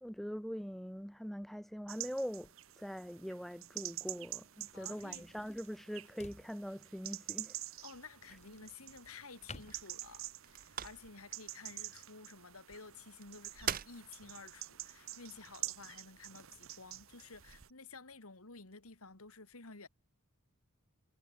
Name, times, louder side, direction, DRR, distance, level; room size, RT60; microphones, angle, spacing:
voice 1, 0.0-7.6, equal, ahead, 1.1 m, -43 dB
sound 1, 1.8-10.6, left 3 dB, 30° left, 2.5 m, -58 dB
sound 2, 1.9-17.7, right 14 dB, 65° right, 1.3 m, -48 dB
voice 2, 4.7-5.2 7.8-19.9, left 4 dB, 80° left, 2.7 m, -53 dB
sound 3, 7.7-17.7, right 9 dB, 40° right, 0.7 m, -48 dB
head